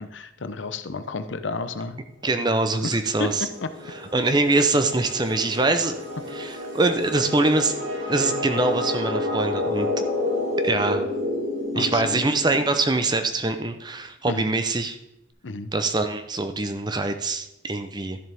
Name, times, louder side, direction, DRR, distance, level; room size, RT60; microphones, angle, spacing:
voice 1, 0.0-2.0 2.8-3.7 11.7-12.2 14.3-14.5 15.4-15.7, left 3 dB, 75° left, 10 dB, 0.7 m, -31 dB
voice 2, 2.2-3.4 4.1-5.9 6.3-7.7 8.1-10.0 10.6-11.1 11.7-15.0 15.7-18.2, right 2 dB, 20° right, 8 dB, 0.6 m, -23 dB
sound 1, 2.7-13.2, left 2 dB, 85° right, 2.4 m, -30 dB
13.0 x 7.2 x 3.5 m, 0.84 s
head